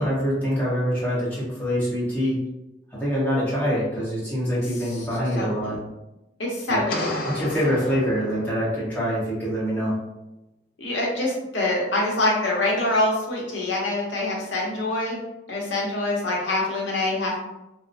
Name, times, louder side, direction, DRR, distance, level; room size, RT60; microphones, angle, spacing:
voice 1, 0.0-2.4 2.9-5.8 6.7-6.8 7.2-9.9, equal, 10° left, -9 dB, 1.1 m, -25 dB
voice 2, 4.8-5.1 5.4-5.8 6.4-7.1 7.6-7.9 10.8-15.2 15.5-17.4, left 2 dB, 75° left, -2 dB, 0.8 m, -25 dB
sound 1, 6.9-8.8, left 2 dB, 50° left, 0.4 m, -32 dB
3.0 x 2.1 x 2.5 m, 0.94 s
head